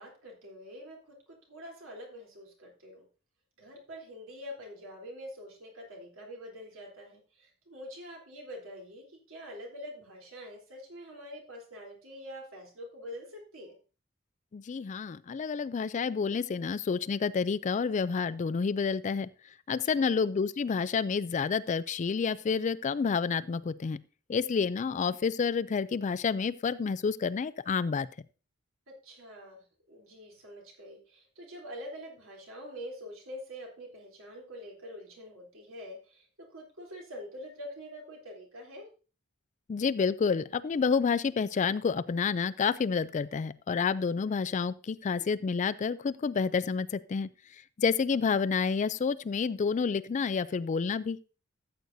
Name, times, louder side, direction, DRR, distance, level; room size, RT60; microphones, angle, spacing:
voice 1, 0.0-3.0 3.6-13.8 19.8-20.1 28.9-38.9, equal, 75° right, -1 dB, 3.3 m, -45 dB
voice 2, 14.5-19.3 19.7-24.0 24.3-28.1 39.7-47.3 47.8-51.2, left 5 dB, 35° left, 16 dB, 0.3 m, -29 dB
14.0 x 8.0 x 2.7 m, 0.34 s
head